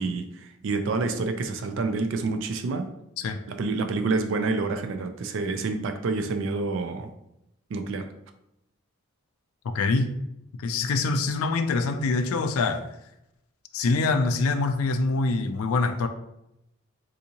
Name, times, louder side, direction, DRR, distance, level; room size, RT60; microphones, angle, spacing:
voice 1, 0.0-2.9 3.5-7.1 7.7-8.1, right 3 dB, 65° right, 7 dB, 0.3 m, -28 dB
voice 2, 9.6-10.2 10.6-12.8 13.7-16.1, left 3 dB, 90° left, 7 dB, 0.4 m, -25 dB
3.5 x 2.7 x 2.8 m, 0.82 s
head